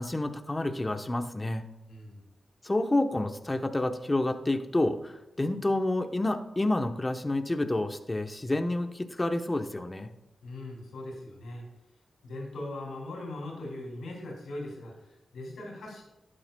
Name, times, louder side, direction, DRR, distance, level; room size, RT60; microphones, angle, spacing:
voice 1, 0.0-1.7 2.6-10.1, left 2 dB, 25° left, 6 dB, 0.9 m, -29 dB
voice 2, 1.9-2.2 10.4-11.6 12.2-16.0, left 1 dB, 90° left, 0 dB, 2.9 m, -40 dB
12.0 x 8.8 x 2.3 m, 0.94 s
cardioid pair, 50°, 0 cm